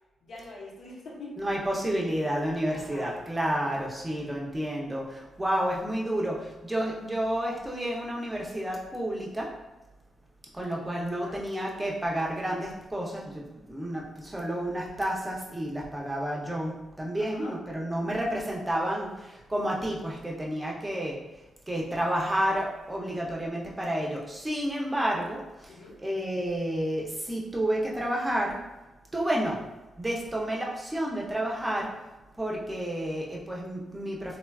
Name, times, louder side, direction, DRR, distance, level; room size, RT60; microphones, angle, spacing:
voice 1, 0.2-1.4 2.7-3.3 3.6-3.8 11.2-11.4 17.2-17.5 25.7-26.0 30.3-30.4, left 2 dB, 75° left, -4 dB, 0.8 m, -44 dB
voice 2, 1.4-9.5 10.5-21.2 21.7-25.7 26.0-28.6 29.1-29.6 30.0-31.9 32.4-34.4, right 1 dB, 10° right, -3 dB, 0.6 m, -30 dB
3.2 x 2.2 x 2.3 m, 1.0 s
cardioid pair, 115°, 0 cm